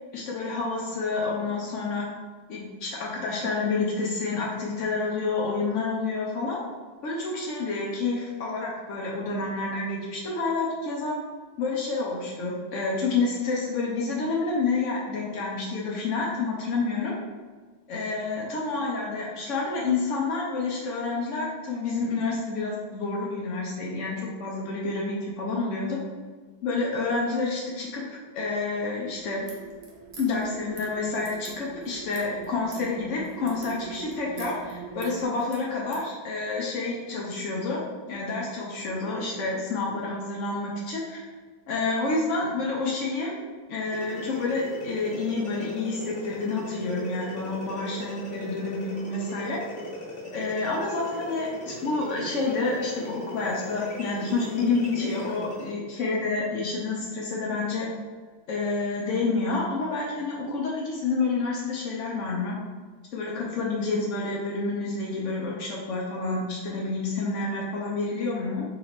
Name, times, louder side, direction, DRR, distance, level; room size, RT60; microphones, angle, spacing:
voice 1, 0.1-2.1 2.5-6.6 7.0-11.2 11.6-17.1 17.9-26.0 26.6-29.4 30.2-37.8 38.1-41.3 41.7-43.4 43.7-49.6 50.3-57.9 58.5-62.6 63.1-68.6, left 3 dB, 90° left, -3 dB, 0.6 m, -29 dB
sound 1, 29.0-35.3, right 7 dB, 90° right, 1.4 m, -43 dB
sound 2, 29.5-36.1, right 3 dB, 55° right, 1.1 m, -48 dB
sound 3, 43.9-55.8, left 1 dB, 30° left, 1.4 m, -39 dB
4.2 x 3.0 x 4.0 m, 1.4 s
omnidirectional pair, 2.2 m